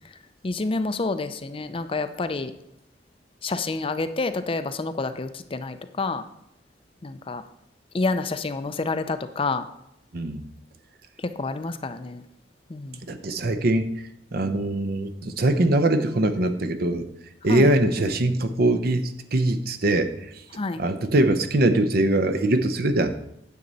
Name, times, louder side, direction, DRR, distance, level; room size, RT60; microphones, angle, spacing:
voice 1, 0.4-2.5 3.4-6.2 7.0-7.4 7.9-9.7 11.2-12.2 12.7-13.0 17.5-17.7 20.5-20.8, left 3 dB, 30° left, 10 dB, 0.5 m, -28 dB
voice 2, 10.1-10.4 13.1-13.9 14.3-17.1 17.4-20.1 20.8-23.1, right 1 dB, 60° right, 9 dB, 0.7 m, -22 dB
9.5 x 7.5 x 4.0 m, 0.80 s
head